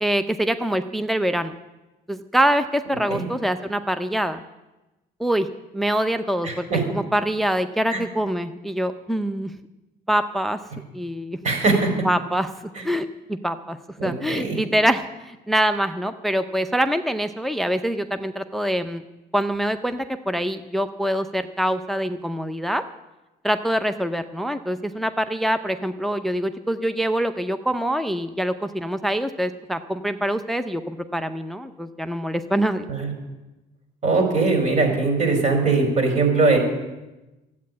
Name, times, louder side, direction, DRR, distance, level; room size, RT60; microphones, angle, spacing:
voice 1, 0.0-1.5 2.1-4.4 5.2-5.5 5.7-9.5 10.1-10.6 10.9-11.4 12.0-12.5 12.8-13.8 14.0-19.0 19.3-22.8 23.4-32.9, right 1 dB, ahead, 10 dB, 0.6 m, -24 dB
voice 2, 6.4-6.8 7.9-8.0 11.4-11.9 14.0-14.6 32.9-33.1 34.0-36.6, right 3 dB, 45° right, 4 dB, 4.6 m, -21 dB
13.0 x 8.6 x 9.5 m, 1.0 s
cardioid pair, 110°, 17 cm